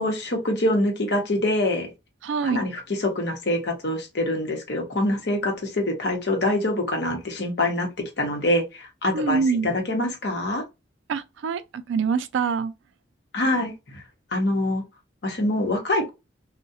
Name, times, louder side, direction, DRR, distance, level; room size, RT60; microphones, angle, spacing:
voice 1, 0.0-1.9 2.4-7.9 8.2-10.6 13.3-14.0 14.3-14.8 15.2-16.1, left 1 dB, 60° left, 0.8 m, -25 dB
voice 2, 2.2-2.6 9.1-9.7 11.1-12.7, right 5 dB, 75° right, 0.3 m, -25 dB
2.3 x 2.1 x 2.6 m
head